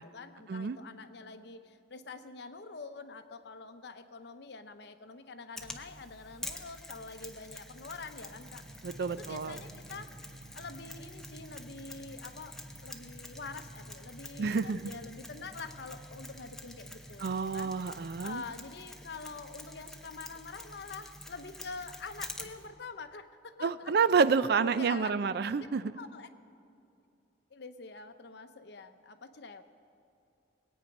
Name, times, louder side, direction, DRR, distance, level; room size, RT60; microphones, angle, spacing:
voice 1, 0.0-8.6 9.1-10.3 10.5-23.9 24.7-25.2 25.9-26.3 27.5-29.6, left 4 dB, 65° left, 9 dB, 0.8 m, -46 dB
Mechanisms, 5.6-22.7, left 1 dB, 5° left, 0.8 m, -48 dB
sound 1, 7.4-18.5, right 1 dB, 80° right, 1.9 m, -53 dB
voice 2, 8.8-9.6 14.4-14.8 17.2-18.4 23.6-25.9, right 5 dB, 60° right, 15 dB, 0.4 m, -29 dB
21.0 x 8.9 x 5.3 m, 2.6 s
head